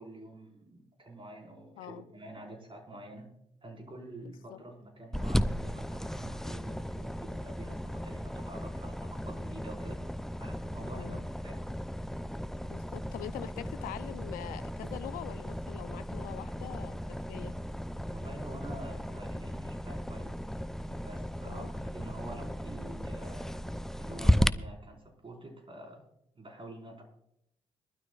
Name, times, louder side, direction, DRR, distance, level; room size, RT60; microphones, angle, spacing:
voice 1, 0.0-3.3 3.6-10.0 10.4-11.7 18.1-20.4 20.8-23.7 24.0-26.1 26.3-27.0, right 1 dB, 35° right, 1 dB, 5.0 m, -47 dB
voice 2, 4.2-4.6 10.9-11.3 12.6-17.5 21.4-21.7, left 12 dB, 75° left, 14 dB, 0.7 m, -44 dB
sound 1, 5.1-24.5, equal, 5° left, 0.5 m, -35 dB
22.5 x 12.5 x 2.5 m, 0.78 s
hypercardioid pair, 40°, 15 cm